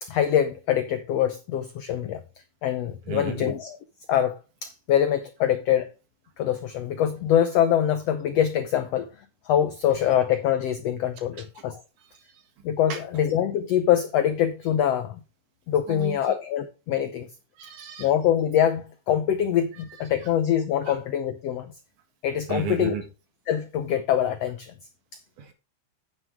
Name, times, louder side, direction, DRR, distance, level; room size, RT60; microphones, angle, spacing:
voice 1, 0.0-2.2 2.6-3.8 4.1-5.9 6.4-9.1 9.4-11.8 12.6-15.2 15.7-17.3 18.0-21.7 22.2-22.9 23.5-24.7, left 10 dB, 90° left, 1.4 m, -24 dB
voice 2, 3.1-3.5 12.9-13.0 15.9-16.2 17.6-18.1 20.9-21.0 22.5-23.0 25.4-25.5, right 6 dB, 70° right, 3.0 m, -33 dB
9.0 x 8.9 x 3.6 m
omnidirectional pair, 3.8 m